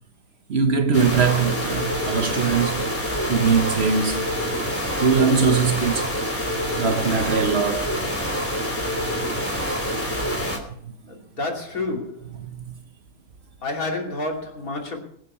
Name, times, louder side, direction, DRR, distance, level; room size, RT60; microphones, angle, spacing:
voice 1, 0.5-2.9 3.3-4.3 5.0-6.1 6.7-8.0 10.1-10.2 12.4-12.7, right 5 dB, 50° right, 1.1 m, -21 dB
sound 1, 0.9-10.6, equal, 10° left, 3.0 m, -26 dB
voice 2, 11.1-12.2 13.6-15.0, left 2 dB, 75° left, 3.2 m, -29 dB
21.5 x 7.7 x 5.5 m
omnidirectional pair, 1.5 m